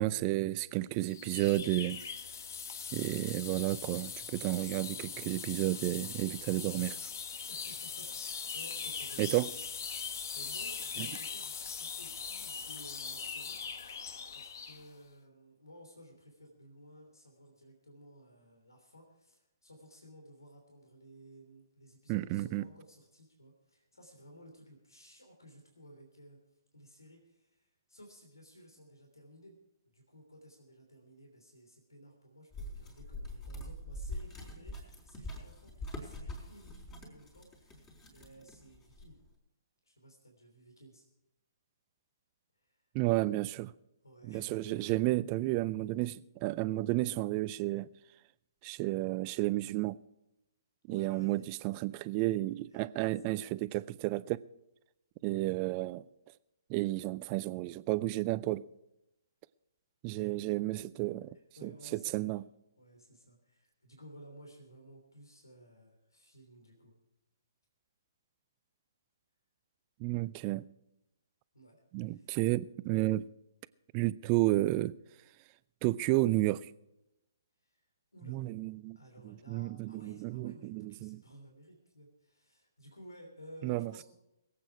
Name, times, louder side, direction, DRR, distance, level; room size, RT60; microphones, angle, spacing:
voice 1, 0.0-2.0 2.9-7.0 9.2-9.5 11.0-11.1 22.1-22.6 42.9-43.7 44.2-47.9 48.6-50.0 50.9-54.4 55.2-56.0 56.7-58.6 60.0-61.4 61.6-62.4 70.0-70.6 71.9-73.3 73.9-75.0 75.8-76.7 78.3-79.0 79.2-81.2 83.6-84.0, right 18 dB, 30° right, 0.4 m, -32 dB
sound 1, 1.0-14.9, left 6 dB, 55° left, 1.1 m, -41 dB
voice 2, 4.7-5.6 7.5-9.5 9.9-26.4 26.7-29.5 29.9-39.2 39.8-41.1 42.5-42.8 44.0-44.9 50.9-51.5 52.7-53.5 60.1-60.4 61.6-62.5 62.8-66.9 71.5-71.8 72.1-72.3 77.6-78.4 78.9-84.0, equal, 85° left, 3.2 m, -56 dB
sound 2, 32.5-39.3, left 1 dB, 20° left, 4.1 m, -44 dB
21.5 x 8.6 x 4.8 m
figure-of-eight pair, 135°, 2 cm